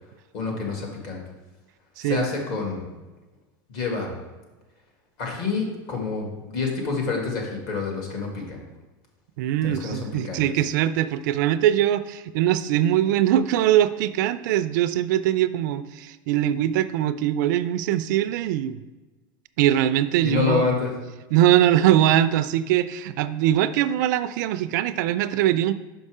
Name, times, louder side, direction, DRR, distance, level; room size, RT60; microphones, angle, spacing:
voice 1, 0.3-1.2 2.0-2.8 3.7-4.2 5.2-8.6 9.6-10.0 10.2-10.4 20.2-20.9, left 4 dB, 50° left, 0 dB, 1.9 m, -27 dB
voice 2, 9.4-18.8 19.6-20.8 21.3-25.7, right 12 dB, 65° right, 13 dB, 0.4 m, -22 dB
6.0 x 5.4 x 4.9 m, 1.2 s
supercardioid pair, 160°, 11 cm